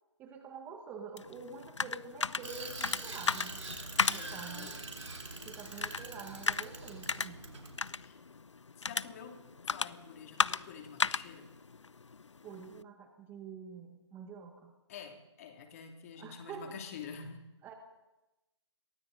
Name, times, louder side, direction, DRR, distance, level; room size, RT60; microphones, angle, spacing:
voice 1, 0.2-3.6 4.1-4.7 5.4-7.4 12.4-14.7 16.2-16.7 17.6-17.7, right 5 dB, 10° right, 5 dB, 1.4 m, -47 dB
sound 1, 1.2-12.8, left 5 dB, 85° left, 0.7 m, -36 dB
Bicycle, 2.4-7.9, right 3 dB, 85° right, 3.6 m, -44 dB
voice 2, 4.1-4.8 7.9-8.2 8.8-11.5 14.9-17.5, left 6 dB, 30° left, 3 dB, 2.7 m, -48 dB
30.0 x 23.0 x 4.0 m, 1.0 s
figure-of-eight pair, 155°, 15 cm